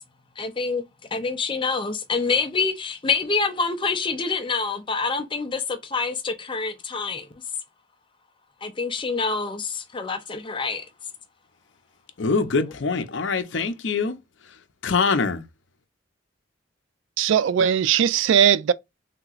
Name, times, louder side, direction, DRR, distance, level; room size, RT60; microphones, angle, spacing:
voice 1, 0.4-0.8 1.1-7.3 8.6-10.9 12.3-12.7, left 4 dB, 25° left, 0.5 m, -26 dB
voice 2, 12.2-14.2 14.8-15.4, left 4 dB, 75° left, 0.6 m, -23 dB
voice 3, 17.2-18.7, right 8 dB, 80° right, 0.3 m, -19 dB
3.4 x 2.9 x 2.4 m
head